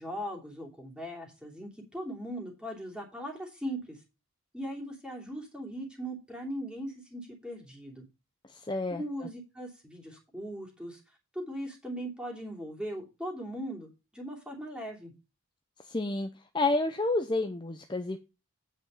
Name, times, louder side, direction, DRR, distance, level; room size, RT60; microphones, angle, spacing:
voice 1, 0.0-4.0 4.5-8.0 8.9-11.0 11.3-15.1, equal, 5° right, 2.8 m, -39 dB
voice 2, 8.5-9.3 15.8-16.3 16.5-18.2, left 2 dB, 20° left, 0.6 m, -30 dB
9.0 x 5.1 x 5.5 m
head